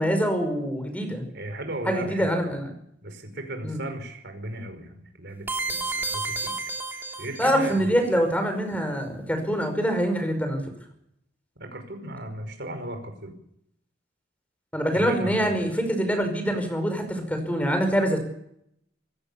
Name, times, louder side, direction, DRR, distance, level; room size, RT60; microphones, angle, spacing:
voice 1, 0.0-1.2 1.9-2.7 3.6-3.8 7.4-10.6 14.7-18.2, equal, 10° left, 6 dB, 5.3 m, -25 dB
voice 2, 1.3-2.3 3.0-6.5 7.2-8.1 11.6-13.3 14.9-15.7, right 1 dB, 60° right, 6 dB, 5.5 m, -36 dB
sound 1, 5.5-7.8, right 3 dB, 10° right, 3.0 m, -31 dB
24.5 x 16.5 x 7.0 m, 0.73 s
head